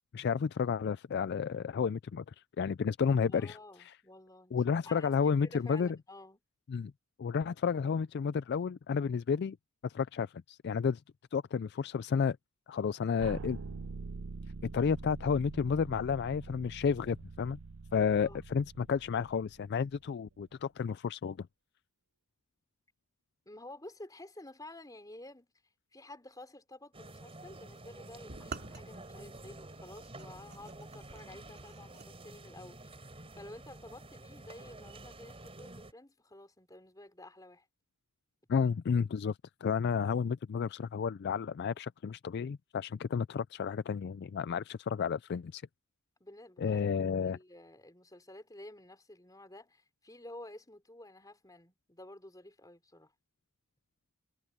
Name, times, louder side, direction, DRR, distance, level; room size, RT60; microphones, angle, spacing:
voice 1, 0.1-2.2 2.6-3.6 4.5-6.0 6.7-6.9 7.2-9.6 9.8-11.0 11.3-12.4 12.7-13.6 14.7-17.6 17.9-21.5 38.5-45.6 46.6-47.4, left 6 dB, 50° left, 0.3 m, -31 dB
voice 2, 3.3-6.4 18.2-18.4 23.5-25.5 25.9-37.7 46.2-46.9 47.2-53.1, left 1 dB, 15° left, 4.1 m, -51 dB
sound 1, 13.2-20.1, right 3 dB, 80° right, 0.7 m, -45 dB
sound 2, 26.9-35.9, right 2 dB, 25° right, 4.1 m, -50 dB
sound 3, 28.3-32.1, right 3 dB, 50° right, 2.6 m, -48 dB
head